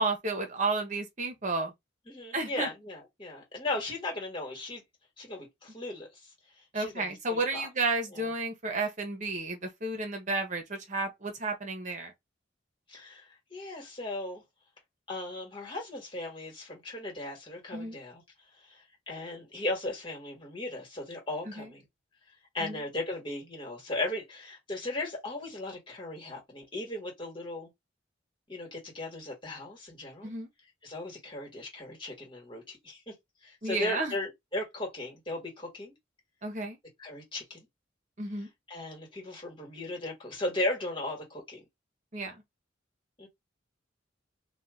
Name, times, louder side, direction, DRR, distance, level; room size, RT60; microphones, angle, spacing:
voice 1, 0.0-1.7 2.3-2.7 6.7-12.1 17.7-18.0 21.4-21.7 22.6-22.8 30.2-30.5 33.6-34.1 36.4-36.8 38.2-38.5 42.1-42.4, right 3 dB, 40° right, 1.0 m, -32 dB
voice 2, 2.1-4.8 5.2-6.1 6.7-7.7 8.1-8.2 12.9-13.3 13.5-14.4 15.1-18.2 18.7-18.8 19.1-21.8 22.5-27.7 28.5-30.3 30.8-33.1 33.4-35.9 37.0-37.6 38.7-41.6 43.2-43.3, left 2 dB, 25° left, 1.7 m, -37 dB
2.8 x 2.4 x 3.7 m
head